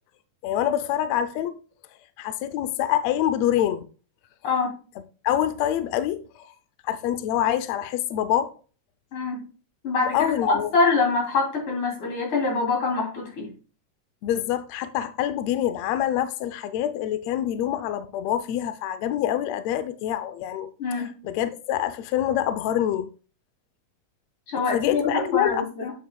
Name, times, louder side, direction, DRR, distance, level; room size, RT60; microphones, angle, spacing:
voice 1, 0.4-1.6 2.2-3.9 5.2-6.5 6.8-8.5 10.1-10.7 14.2-23.1 24.7-25.9, left 11 dB, 85° left, 1.5 m, -26 dB
voice 2, 9.8-13.5 20.8-21.1 24.5-25.9, left 4 dB, 45° left, 3.7 m, -25 dB
8.2 x 7.5 x 2.3 m
omnidirectional pair, 3.6 m